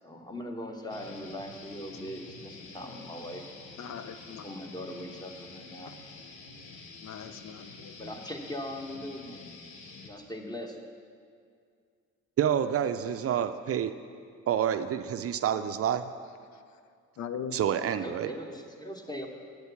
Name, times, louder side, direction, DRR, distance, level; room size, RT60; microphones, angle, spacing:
voice 1, 0.0-3.4 4.4-5.9 8.0-9.4 10.0-10.8 17.9-19.3, left 1 dB, 15° left, 3 dB, 1.1 m, -40 dB
sound 1, 0.9-10.1, left 3 dB, 85° left, 1.1 m, -48 dB
voice 2, 3.8-4.4 7.0-8.0 17.2-17.6, left 7 dB, 65° left, 9 dB, 0.6 m, -40 dB
voice 3, 12.4-13.9 14.5-16.1 17.5-18.3, right 9 dB, 50° right, 10 dB, 0.4 m, -28 dB
8.2 x 6.4 x 6.9 m, 2.2 s
cardioid pair, 90°, 30 cm